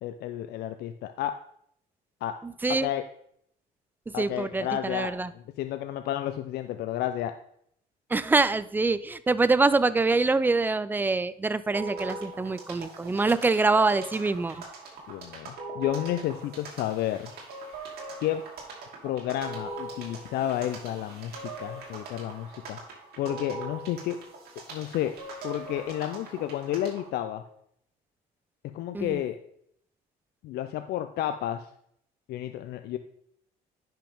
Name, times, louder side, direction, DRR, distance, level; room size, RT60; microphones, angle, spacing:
voice 1, 0.0-1.4 2.2-2.4 2.7-3.0 4.1-7.3 15.1-17.3 18.2-18.4 19.0-22.8 23.2-24.2 24.7-25.1 25.4-27.4 28.6-29.4 30.4-31.7 32.3-33.0, left 12 dB, 70° left, 9 dB, 0.5 m, -31 dB
voice 2, 2.4-2.9 4.2-5.3 8.1-14.6 28.9-29.2, right 3 dB, 10° right, 15 dB, 0.4 m, -25 dB
sound 1, 11.7-27.1, right 2 dB, 65° right, 2.5 m, -41 dB
10.0 x 5.9 x 3.5 m, 0.70 s
cardioid pair, 110°, 17 cm